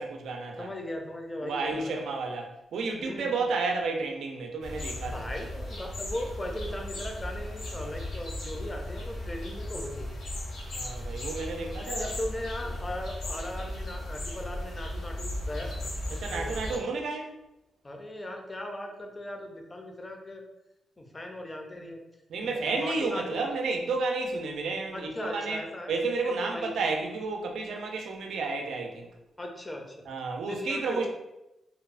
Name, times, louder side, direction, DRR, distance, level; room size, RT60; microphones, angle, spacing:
voice 1, 0.0-0.7 1.4-5.3 10.7-12.1 16.1-17.4 22.3-25.6 25.9-29.1 30.1-31.1, right 3 dB, 80° right, 1 dB, 0.4 m, -31 dB
voice 2, 0.6-2.1 3.0-3.5 5.1-10.2 11.8-15.8 16.3-16.6 17.8-20.4 21.0-22.0 22.4-23.4 24.9-26.7 29.4-30.0 30.5-31.1, left 1 dB, 15° left, 2 dB, 0.4 m, -38 dB
sound 1, 4.6-16.8, left 1 dB, 70° left, 0.7 m, -36 dB
2.7 x 2.0 x 2.4 m, 0.91 s
wide cardioid pair, 140°, 0 cm